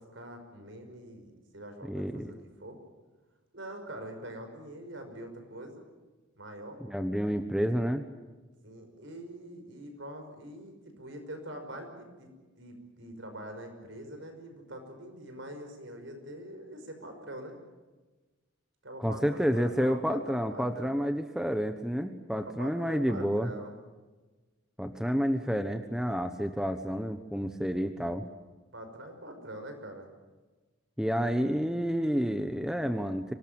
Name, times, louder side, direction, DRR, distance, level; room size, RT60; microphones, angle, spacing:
voice 1, 0.0-2.8 3.5-5.8 6.3-6.8 8.6-12.3 12.6-17.6 18.8-21.0 22.4-23.7 28.7-30.1, right 1 dB, 65° right, 6 dB, 5.6 m, -44 dB
voice 2, 1.9-2.3 6.9-8.0 19.0-23.5 24.8-28.2 31.0-33.3, equal, 5° right, 7 dB, 1.1 m, -29 dB
24.5 x 19.5 x 9.0 m, 1.2 s
head